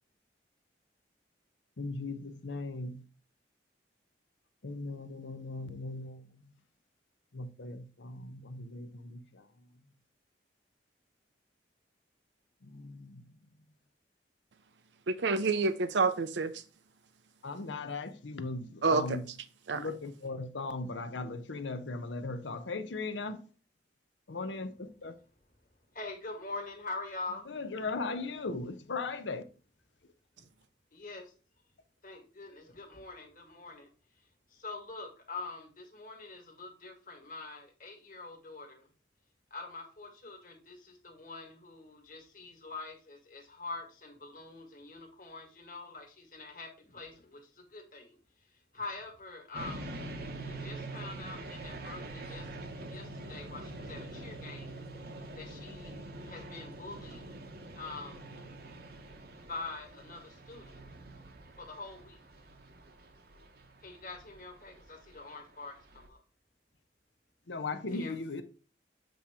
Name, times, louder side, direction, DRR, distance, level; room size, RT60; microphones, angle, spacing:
voice 1, 1.8-3.0 4.6-6.4 7.3-9.5 12.6-13.2 17.4-19.2 19.7-23.4 24.3-25.2 27.5-29.4 67.5-68.4, left 3 dB, 85° left, 0.8 m, -38 dB
voice 2, 15.1-16.5 18.8-19.0 19.7-19.9, right 4 dB, 75° right, 0.5 m, -28 dB
voice 3, 25.9-27.5 30.4-30.5 30.9-31.3 32.0-33.9 34.1-38.9 39.5-48.2 48.4-49.9 50.5-52.5 52.9-54.8 55.4-57.3 57.8-58.4 59.5-60.8 61.6-62.2 63.8-66.2 67.9-68.1, left 3 dB, 45° left, 1.9 m, -45 dB
sound 1, 49.5-66.1, right 2 dB, 55° right, 0.9 m, -45 dB
7.8 x 2.9 x 4.9 m
head